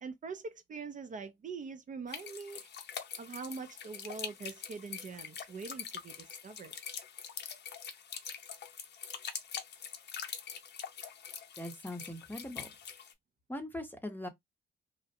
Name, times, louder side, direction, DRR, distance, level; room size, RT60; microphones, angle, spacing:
voice 1, 0.0-2.7 3.2-6.7, right 5 dB, 40° right, 0.5 m, -43 dB
sound 1, 2.1-13.1, left 7 dB, 60° left, 0.6 m, -44 dB
voice 2, 11.6-12.7 13.5-14.3, left 1 dB, 10° left, 0.7 m, -41 dB
2.4 x 2.0 x 2.7 m
cardioid pair, 90°, 20 cm